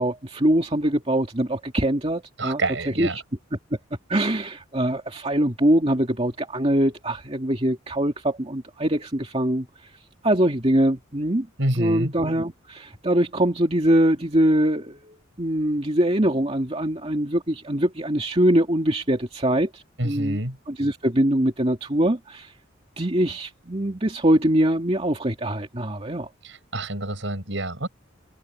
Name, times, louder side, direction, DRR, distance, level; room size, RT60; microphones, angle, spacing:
voice 1, 0.0-3.2 4.1-9.9 10.2-11.5 11.8-20.4 20.7-22.5 23.0-26.3, right 1 dB, 30° right, 2.4 m, -23 dB
voice 2, 2.4-3.2 11.6-12.1 20.0-20.6 26.4-27.9, right 1 dB, 65° right, 7.5 m, -27 dB
head